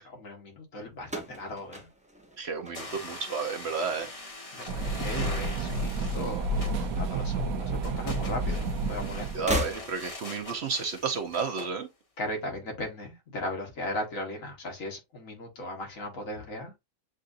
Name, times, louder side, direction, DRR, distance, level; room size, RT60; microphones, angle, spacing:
voice 1, 0.0-1.9 4.5-9.4 12.2-16.7, left 1 dB, 70° left, 1.7 m, -37 dB
sound 1, 1.0-3.4 3.7-4.3 5.3-6.3 6.6-6.7 7.8-7.9 9.3-10.3, left 1 dB, 5° right, 0.6 m, -36 dB
voice 2, 2.4-4.1 9.3-11.9, right 5 dB, 55° right, 0.9 m, -31 dB
sound 2, 2.7-11.7, left 2 dB, 25° left, 1.0 m, -43 dB
sound 3, 4.7-9.6, right 2 dB, 90° right, 1.1 m, -30 dB
7.5 x 2.5 x 2.5 m
omnidirectional pair, 1.5 m